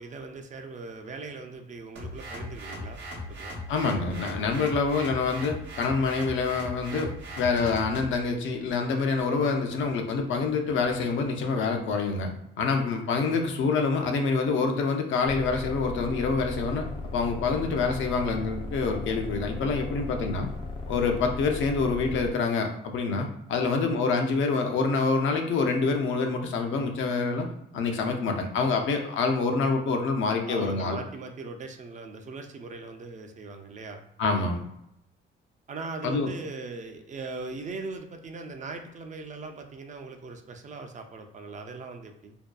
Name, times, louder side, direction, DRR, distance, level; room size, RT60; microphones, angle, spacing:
voice 1, 0.0-3.0 3.3-3.6 23.6-23.9 30.5-34.0 35.7-42.4, right 3 dB, 40° right, 5 dB, 0.4 m, -40 dB
sound 1, 2.0-8.2, left 1 dB, 70° right, 0.8 m, -38 dB
voice 2, 3.7-7.1 7.4-12.3 12.6-16.9 17.1-20.5 20.9-27.5 27.7-31.0 34.2-34.6 36.0-36.3, left 4 dB, 75° left, 4 dB, 0.5 m, -26 dB
sound 2, 15.2-22.3, left 2 dB, 25° left, 0.5 m, -36 dB
2.6 x 2.2 x 2.2 m, 0.80 s
cardioid pair, 90°, 20 cm